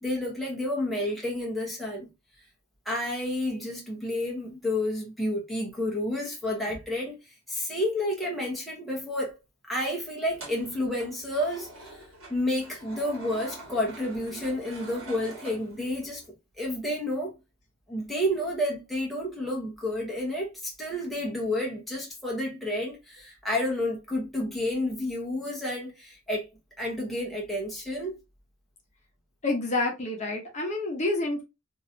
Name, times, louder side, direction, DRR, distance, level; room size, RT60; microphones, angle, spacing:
voice 1, 0.0-2.1 2.9-9.3 9.6-16.2 16.6-17.3 17.9-26.4 26.8-28.2, left 1 dB, ahead, 0.8 m, -30 dB
sound 1, 10.2-16.3, equal, 65° right, 1.6 m, -45 dB
voice 2, 29.4-31.4, left 2 dB, 35° left, 0.9 m, -28 dB
3.0 x 2.7 x 2.6 m
head